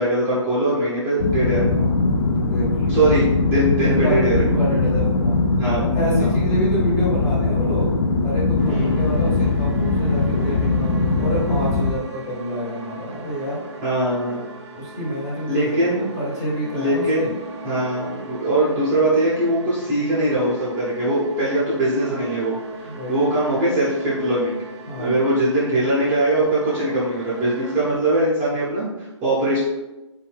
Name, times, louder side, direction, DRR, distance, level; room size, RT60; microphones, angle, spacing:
voice 1, 0.0-1.9 2.9-4.6 5.6-5.8 6.2-6.3 8.7-9.0 13.8-14.4 15.5-16.0 16.7-17.2 17.6-24.6 25.0-29.6, right 1 dB, 15° right, -9 dB, 0.6 m, -21 dB
sound 1, 1.2-11.9, left 3 dB, 50° left, 0.4 m, -20 dB
voice 2, 2.3-3.0 3.8-5.4 5.7-7.9 8.2-10.9 11.2-13.6 14.7-17.4 21.3-21.7 22.9-23.2 24.9-25.2, equal, 20° left, -5 dB, 0.7 m, -28 dB
sound 2, 8.6-28.0, right 1 dB, 60° right, 0.5 m, -40 dB
2.6 x 2.3 x 3.2 m, 1.1 s
hypercardioid pair, 150°, 16 cm